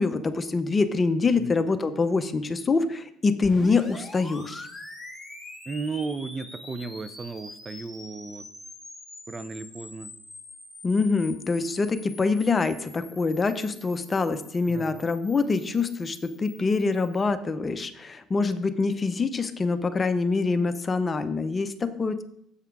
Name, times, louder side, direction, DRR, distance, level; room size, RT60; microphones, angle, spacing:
voice 1, 0.0-4.7 10.8-22.2, left 4 dB, 25° left, 10 dB, 0.7 m, -25 dB
sound 1, 3.4-17.3, left 2 dB, 5° left, 2.1 m, -45 dB
voice 2, 5.7-8.5 9.3-10.1 14.7-15.0, right 4 dB, 25° right, 12 dB, 0.6 m, -35 dB
8.1 x 5.7 x 4.7 m, 0.73 s
supercardioid pair, 85°, 0 cm